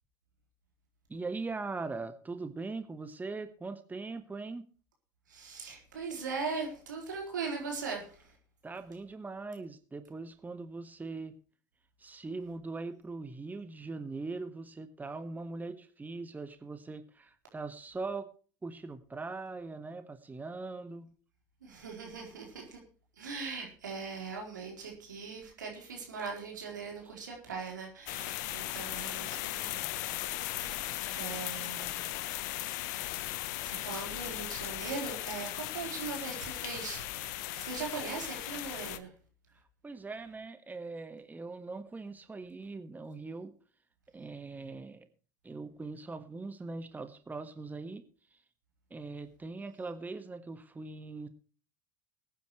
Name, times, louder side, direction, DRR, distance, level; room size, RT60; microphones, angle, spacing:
voice 1, 1.1-4.6 8.6-11.3 12.0-18.3 18.6-21.1 39.8-43.5 44.1-45.1 45.4-48.0 48.9-51.3, right 3 dB, 15° right, 9 dB, 1.5 m, -41 dB
voice 2, 5.3-8.3 21.6-22.8 23.2-29.9 30.4-32.0 33.7-39.1, right 4 dB, 85° right, 0 dB, 4.3 m, -40 dB
sound 1, 28.1-39.0, left 15 dB, 70° left, 1.0 m, -37 dB
21.5 x 9.4 x 3.2 m, 0.39 s
hypercardioid pair, 70°, 10 cm